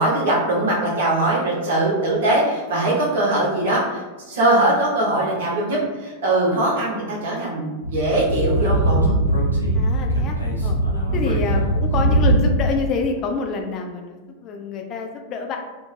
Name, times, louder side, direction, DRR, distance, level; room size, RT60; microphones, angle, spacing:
voice 1, 0.0-9.2 11.1-11.3, right 1 dB, 60° right, -4 dB, 0.8 m, -21 dB
Speech / Wind, 7.8-12.7, right 1 dB, 90° left, 0.5 m, -20 dB
voice 2, 9.7-10.4 10.6-10.8 11.1-15.6, left 4 dB, 35° left, 3 dB, 0.3 m, -27 dB
2.3 x 2.0 x 3.1 m, 1.2 s
figure-of-eight pair, 90°, 0 cm